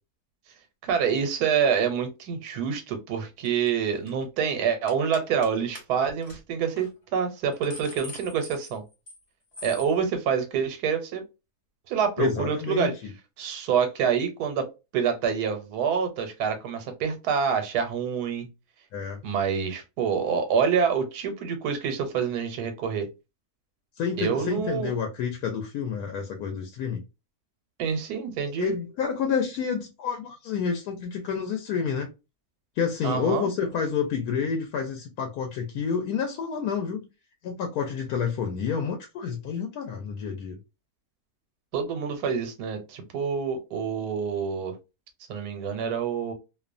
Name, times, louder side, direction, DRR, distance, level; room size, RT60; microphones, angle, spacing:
voice 1, 0.8-8.8 9.6-11.2 11.9-12.9 13.4-14.7 14.9-18.5 19.2-23.1 24.2-24.9 27.8-28.7 33.0-33.5 41.7-44.8 45.3-46.3, right 7 dB, 90° right, 1.2 m, -27 dB
sound 1, 3.4-3.7 4.0-4.2 4.9-5.5 5.8-5.9 6.2-6.4 6.8-6.9 7.3-9.2 9.5-9.9, left 1 dB, 40° left, 0.4 m, -43 dB
voice 2, 12.2-13.1 18.9-19.2 24.0-27.0 28.6-32.1 32.8-37.1 37.4-40.6, left 6 dB, 80° left, 1.1 m, -29 dB
2.7 x 2.1 x 2.4 m
omnidirectional pair, 1.6 m